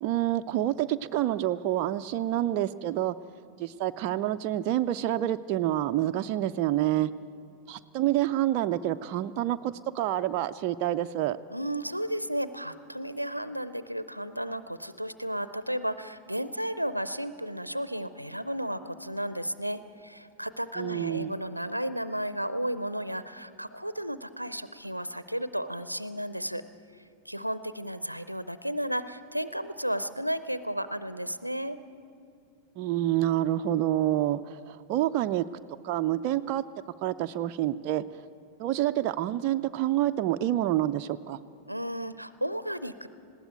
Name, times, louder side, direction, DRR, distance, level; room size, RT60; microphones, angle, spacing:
voice 1, 0.0-3.2 3.6-7.1 7.7-11.4 20.8-21.3 32.8-35.4 35.8-36.6 37.0-38.0 38.6-41.4, right 13 dB, 40° right, 8 dB, 0.4 m, -27 dB
voice 2, 11.5-26.6 27.3-31.8 41.7-43.1, equal, 90° right, 14 dB, 0.6 m, -33 dB
20.0 x 16.5 x 9.2 m, 2.4 s
figure-of-eight pair, 90°, 0 cm